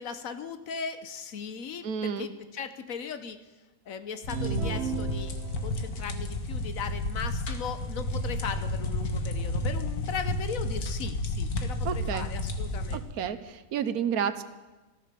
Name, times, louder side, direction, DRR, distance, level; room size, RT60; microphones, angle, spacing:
voice 1, 0.0-3.4 3.9-5.3 5.6-13.3, left 6 dB, 70° left, 10 dB, 1.3 m, -38 dB
voice 2, 1.8-2.3 11.8-12.3 12.9-14.4, right 8 dB, 85° right, 12 dB, 1.3 m, -31 dB
sound 1, 4.2-13.0, left 1 dB, 90° left, 2.0 m, -31 dB
sound 2, 4.3-5.9, right 9 dB, 60° right, 0.9 m, -35 dB
14.0 x 14.0 x 6.8 m, 1.2 s
omnidirectional pair, 1.5 m